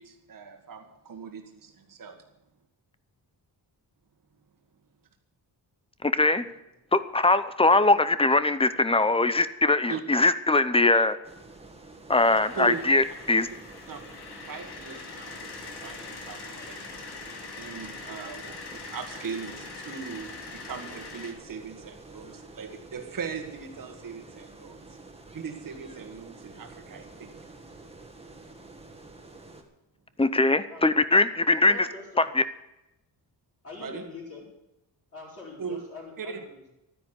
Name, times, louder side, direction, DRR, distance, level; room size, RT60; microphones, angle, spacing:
voice 1, 0.0-2.3 9.9-10.0 12.6-12.8 13.9-14.0 14.5-16.8 17.6-25.0 25.3-27.3 33.8-34.0 35.6-35.8 36.2-36.4, right 6 dB, 50° right, 4 dB, 1.8 m, -39 dB
voice 2, 6.0-6.5 6.9-11.2 12.1-13.5 30.2-31.8 32.2-32.4, left 2 dB, 15° left, 13 dB, 0.7 m, -21 dB
sound 1, 11.2-29.6, right 3 dB, 15° right, 1.8 m, -48 dB
sound 2, 12.1-21.3, left 4 dB, 65° left, 2.5 m, -43 dB
voice 3, 31.6-32.3 33.6-34.5 35.1-36.7, left 3 dB, 35° left, -6 dB, 5.1 m, -44 dB
13.0 x 10.0 x 8.1 m, 0.89 s
wide cardioid pair, 145°, 42 cm